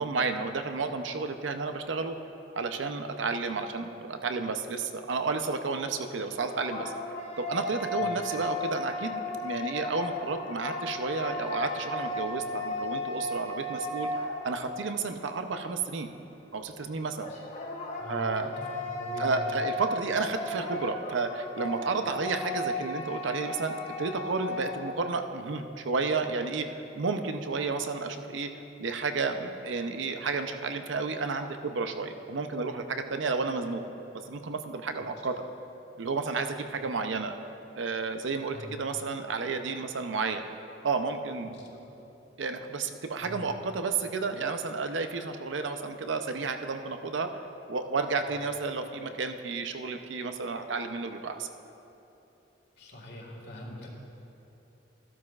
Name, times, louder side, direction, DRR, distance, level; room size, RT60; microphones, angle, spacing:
voice 1, 0.0-2.2 2.5-6.9 7.4-14.1 14.4-16.1 16.5-17.3 18.1-18.5 19.2-28.5 28.8-33.8 34.3-35.4 36.0-37.3 37.7-40.4 40.8-41.6 42.4-47.3 47.7-51.5, right 4 dB, 85° right, 7 dB, 0.6 m, -31 dB
sound 1, 6.2-14.9 17.2-24.9, left 2 dB, 35° left, 1.1 m, -35 dB
voice 2, 18.0-18.5 19.0-19.5 38.5-38.8 41.6-41.8 43.2-43.5 52.8-54.0, equal, 60° left, -1 dB, 1.8 m, -42 dB
14.5 x 12.0 x 2.4 m, 3.0 s
head